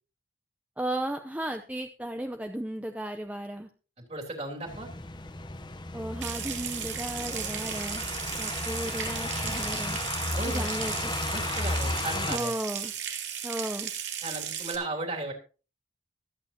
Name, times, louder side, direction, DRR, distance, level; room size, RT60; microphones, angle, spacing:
voice 1, 0.8-3.7 5.9-8.0 8.4-10.0 10.5-11.1 12.3-12.9 13.4-13.9, right 1 dB, 10° right, 6 dB, 0.7 m, -34 dB
voice 2, 4.1-4.9 10.3-10.8 11.3-12.5 14.2-15.3, right 2 dB, 35° right, 2 dB, 3.3 m, -35 dB
sound 1, 4.7-12.4, left 2 dB, 25° left, 0.8 m, -34 dB
Water tap faucet / Sink (filling or washing) / Trickle dribble, 6.2-14.8, right 9 dB, 80° right, 2.8 m, -35 dB
24.0 x 8.8 x 2.9 m, 0.34 s
head